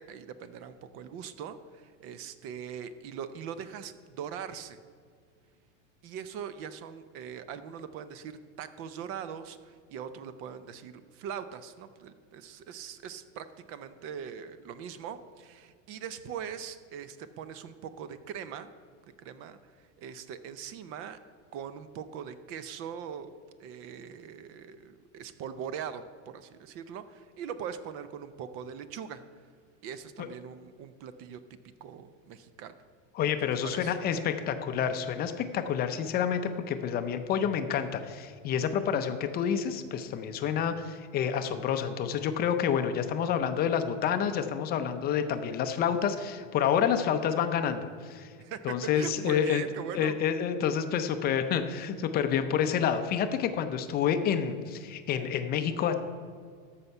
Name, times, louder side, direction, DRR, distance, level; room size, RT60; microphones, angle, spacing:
voice 1, 0.0-4.8 6.0-18.7 19.0-21.2 21.5-23.3 23.6-29.2 29.8-31.4 31.8-32.8 33.6-33.9 48.4-50.2, right 8 dB, 35° right, 12 dB, 0.5 m, -41 dB
voice 2, 33.2-48.3 48.6-49.6 49.9-55.9, left 8 dB, 25° left, 8 dB, 0.5 m, -28 dB
14.0 x 5.7 x 5.4 m, 2.1 s
supercardioid pair, 145°, 37 cm